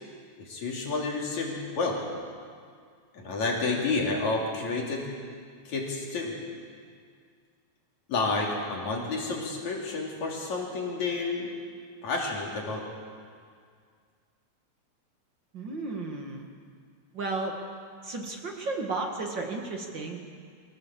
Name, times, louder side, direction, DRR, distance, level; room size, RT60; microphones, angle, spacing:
voice 1, 0.4-2.0 3.1-5.1 5.7-6.4 8.1-11.6 12.0-12.9, left 3 dB, 70° left, -1 dB, 4.5 m, -30 dB
voice 2, 15.5-16.5 17.1-17.6 18.0-20.2, right 3 dB, 40° right, 2 dB, 2.2 m, -33 dB
24.5 x 17.0 x 7.6 m, 2.1 s
omnidirectional pair, 3.4 m